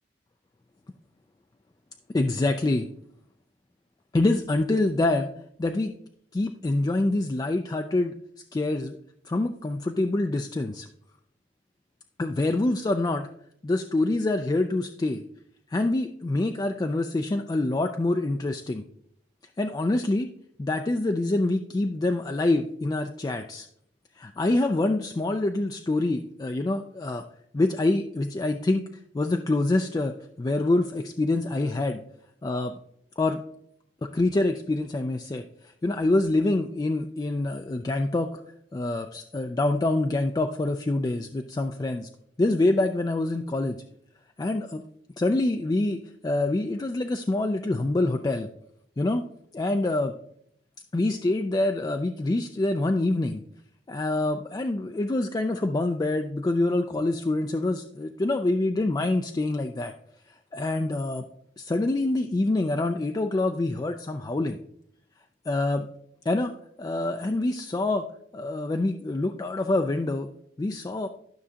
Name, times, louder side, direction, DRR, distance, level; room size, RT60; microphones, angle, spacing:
voice 1, 2.1-2.9 4.1-5.3 5.6-5.9 6.3-8.1 8.5-9.0 9.2-10.9 12.2-13.3 13.6-15.2 15.7-18.8 19.6-20.3 20.6-23.7 24.2-27.3 27.5-28.9 29.1-32.0 32.4-32.8 33.2-33.4 34.0-38.4 38.7-42.1 42.4-43.8 44.4-44.8 45.2-48.5 49.0-49.3 49.5-50.1 50.9-53.4 53.9-59.9 60.5-61.2 61.6-64.6 65.5-65.9 66.3-68.1 68.3-70.3 70.6-71.1, left 2 dB, 20° left, 6 dB, 0.3 m, -26 dB
12.0 x 6.2 x 2.8 m, 0.71 s
head